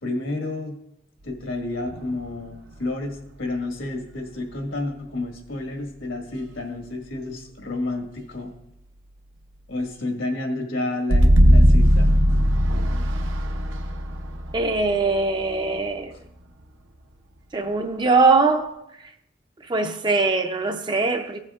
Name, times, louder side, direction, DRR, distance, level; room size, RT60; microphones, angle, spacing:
voice 1, 0.0-0.8 1.2-8.5 9.7-12.1, left 2 dB, 75° left, 1.6 m, -30 dB
sound 1, 1.9-2.8 4.5-4.6 11.1-15.8, equal, 75° right, 0.7 m, -18 dB
voice 2, 14.5-16.1 17.5-18.8 19.6-21.4, right 3 dB, 20° right, 0.5 m, -21 dB
16.0 x 7.6 x 2.4 m
head